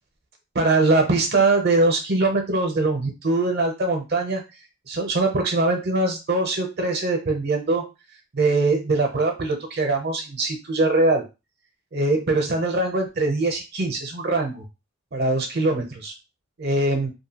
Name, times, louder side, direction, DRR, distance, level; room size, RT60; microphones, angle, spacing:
voice 1, 0.5-4.4 4.9-7.8 8.3-11.2 11.9-14.6 15.1-16.1 16.6-17.1, right 2 dB, 50° right, 3 dB, 0.6 m, -22 dB
2.7 x 2.2 x 2.8 m, 0.27 s
head